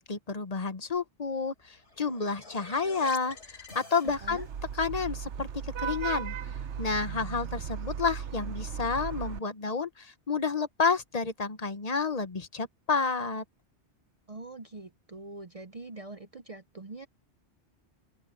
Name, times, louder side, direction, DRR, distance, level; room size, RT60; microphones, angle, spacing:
voice 1, 0.0-4.5 4.8-5.5 5.8-6.3 6.8-13.4, left 4 dB, 35° left, 1.1 m, -30 dB
sound 1, 1.6-4.6, left 3 dB, 85° left, 3.9 m, -47 dB
Vehicle horn car horn honking / Traffic noise roadway noise, 4.1-9.4, right 8 dB, 80° right, 1.1 m, -36 dB
voice 2, 14.3-17.1, right 2 dB, 35° right, 0.7 m, -44 dB
open air
omnidirectional pair, 1.2 m